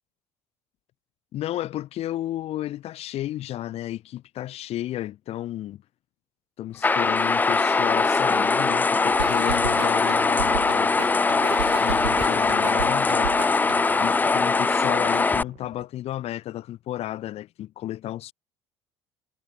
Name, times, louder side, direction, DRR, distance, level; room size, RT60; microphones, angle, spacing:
voice 1, 1.3-5.8 6.6-11.1 11.8-13.3 14.0-18.3, left 13 dB, 50° left, 1.1 m, -32 dB
sound 1, 6.8-15.4, left 4 dB, 15° left, 0.4 m, -21 dB
sound 2, 9.2-14.1, right 9 dB, 80° right, 1.7 m, -34 dB
sound 3, 9.5-15.9, right 14 dB, 50° right, 6.4 m, -55 dB
figure-of-eight pair, 60°, 14 cm